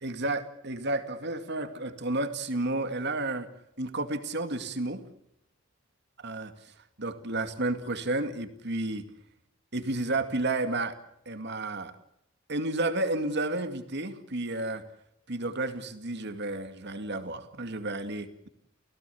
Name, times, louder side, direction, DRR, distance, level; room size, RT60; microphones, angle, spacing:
voice 1, 0.0-3.5 3.8-5.0 6.2-6.7 7.0-9.0 9.7-11.0 11.3-12.0 12.5-14.8 15.3-18.5, right 2 dB, 55° right, 9 dB, 2.3 m, -31 dB
29.5 x 17.0 x 7.1 m, 0.79 s
head